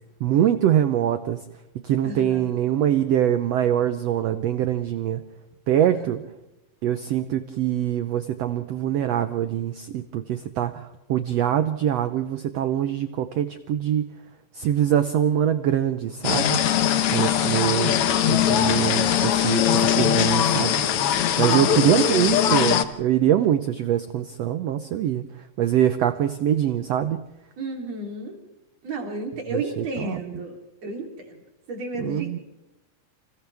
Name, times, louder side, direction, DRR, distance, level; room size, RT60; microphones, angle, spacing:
voice 1, 0.2-1.4 1.8-5.2 5.7-6.2 6.8-14.1 14.5-16.6 17.1-18.0 18.3-20.8 21.4-25.2 25.6-27.2 29.5-30.2 32.0-32.4, right 10 dB, 80° right, 10 dB, 1.4 m, -23 dB
voice 2, 2.0-2.5 5.9-6.2 17.2-17.4 21.4-22.4 27.6-28.4 28.8-31.4 31.7-32.4, right 2 dB, 50° right, 2 dB, 4.4 m, -33 dB
sound 1, 16.2-22.8, left 10 dB, 75° left, 1.3 m, -21 dB
29.5 x 27.5 x 3.5 m, 0.95 s
omnidirectional pair, 4.0 m